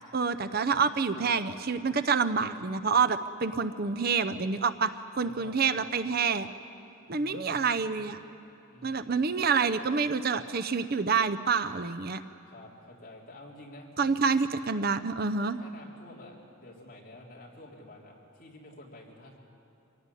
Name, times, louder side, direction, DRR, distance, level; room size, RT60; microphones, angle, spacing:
voice 1, 0.1-4.9 5.2-6.5 7.1-8.2 8.8-12.2 14.0-15.6, right 5 dB, 45° right, 11 dB, 0.6 m, -27 dB
voice 2, 5.2-5.8 7.1-8.0 8.7-9.3 12.5-13.9 15.6-19.4, left 1 dB, 40° left, -2 dB, 3.6 m, -50 dB
24.5 x 16.5 x 9.9 m, 2.9 s
head